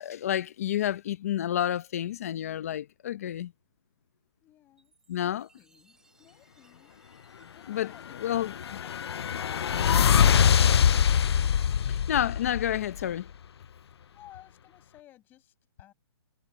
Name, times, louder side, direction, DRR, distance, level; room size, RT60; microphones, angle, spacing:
voice 1, 0.0-3.5 5.1-5.5 7.7-7.9 8.2-8.5 11.9-13.3, left 11 dB, 30° left, 0.8 m, -29 dB
voice 2, 4.4-4.9 5.2-6.9 7.5-8.4 8.8-9.0 13.8-15.9, left 14 dB, 15° left, 6.8 m, -56 dB
Chime, 4.8-9.5, right 3 dB, 5° right, 4.0 m, -67 dB
sound 1, 8.2-13.1, left 8 dB, 65° left, 0.4 m, -23 dB
hypercardioid pair, 170°, 15 cm